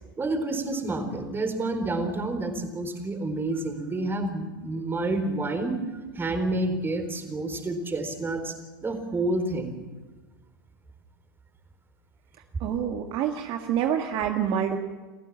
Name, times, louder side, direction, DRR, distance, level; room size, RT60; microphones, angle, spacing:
voice 1, 0.2-5.8 6.2-8.5 8.8-9.7, right 2 dB, 20° right, 7 dB, 4.0 m, -29 dB
voice 2, 12.6-14.8, right 9 dB, 50° right, 4 dB, 1.9 m, -27 dB
29.5 x 15.5 x 7.4 m, 1.3 s
hypercardioid pair, 95°, 11 cm